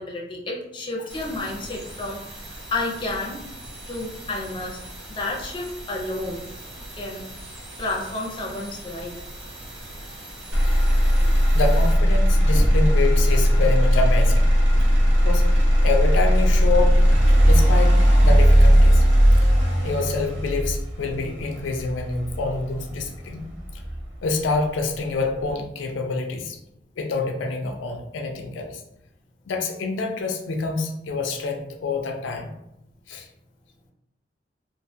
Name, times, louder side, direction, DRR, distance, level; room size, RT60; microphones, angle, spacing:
voice 1, 0.0-3.4 3.9-4.8 5.1-6.5 7.0-7.2 7.8-9.2, left 2 dB, 25° left, -2 dB, 0.5 m, -31 dB
sound 1, 1.1-11.9, right 1 dB, 85° right, 1.0 m, -40 dB
Motor vehicle (road), 10.5-24.5 25.0-25.5, equal, 70° right, 0.6 m, -18 dB
voice 2, 11.5-14.5 15.2-17.0 17.5-19.0 19.3-19.5 19.8-23.4 23.7-23.8 24.2-26.6 27.0-28.8 29.5-32.5 33.1-33.3, left 3 dB, 85° left, 3 dB, 0.4 m, -27 dB
2.4 x 2.2 x 2.6 m, 0.82 s
head